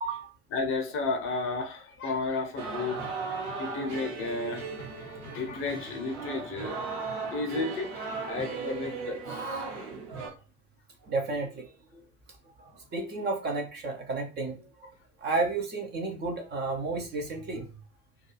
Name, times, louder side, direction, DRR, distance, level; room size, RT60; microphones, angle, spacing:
voice 1, 0.0-0.3 11.0-12.0 12.6-14.9 15.2-17.7, right 3 dB, 25° right, 0.5 m, -32 dB
voice 2, 0.5-6.8 7.3-9.7, left 3 dB, 30° left, 0.7 m, -33 dB
sound 1, 2.6-10.3, right 4 dB, 45° right, 0.9 m, -37 dB
2.3 x 2.2 x 3.0 m
figure-of-eight pair, 70°, 44 cm